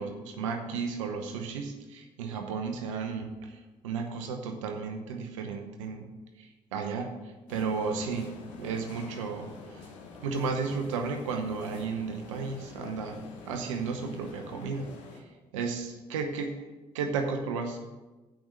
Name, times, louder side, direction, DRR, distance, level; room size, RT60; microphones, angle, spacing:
voice 1, 0.0-6.1 6.4-7.1 7.5-8.3 8.6-9.5 10.2-13.2 13.4-14.9 15.5-16.7 16.9-17.9, right 5 dB, 90° right, 5 dB, 0.8 m, -33 dB
sound 1, 7.5-15.2, left 4 dB, 85° left, 1.4 m, -47 dB
9.0 x 5.2 x 7.3 m, 1.2 s
hypercardioid pair, 55°, 16 cm